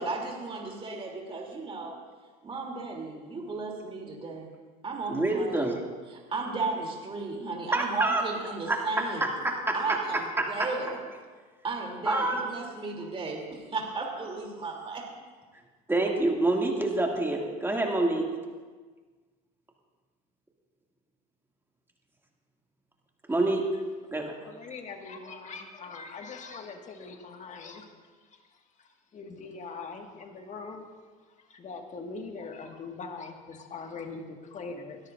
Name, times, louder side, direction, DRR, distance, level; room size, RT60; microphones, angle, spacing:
voice 1, 0.0-2.0 2.4-4.5 4.8-5.7 6.1-9.3 9.7-11.0 11.6-15.0, right 3 dB, 25° right, -1 dB, 3.1 m, -34 dB
voice 2, 5.1-5.8 7.7-8.2 8.7-8.8 9.2-10.7 12.0-12.4 15.9-18.2 23.3-23.7 24.1-24.3, right 2 dB, 10° right, 0 dB, 2.4 m, -27 dB
voice 3, 24.4-30.9 31.3-35.0, left 4 dB, 35° left, 3 dB, 1.9 m, -42 dB
21.5 x 13.5 x 2.6 m, 1.4 s
supercardioid pair, 90°, 21 cm